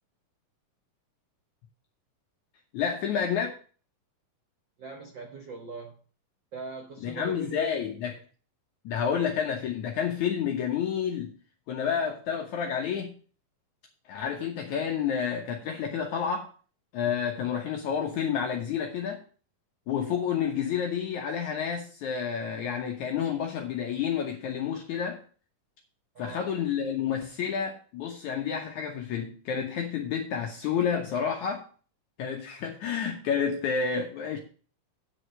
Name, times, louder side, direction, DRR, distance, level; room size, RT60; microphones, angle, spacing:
voice 1, 2.7-3.5 7.0-8.1 8.8-11.3 11.7-13.2 14.1-16.5 16.9-19.2 19.9-25.2 26.2-31.6 32.2-34.4, left 7 dB, 70° left, 1 dB, 2.3 m, -30 dB
voice 2, 4.8-5.9 6.5-7.8 26.1-26.5, right 3 dB, 85° right, 4 dB, 1.0 m, -40 dB
9.0 x 4.9 x 7.6 m, 0.40 s
omnidirectional pair, 3.9 m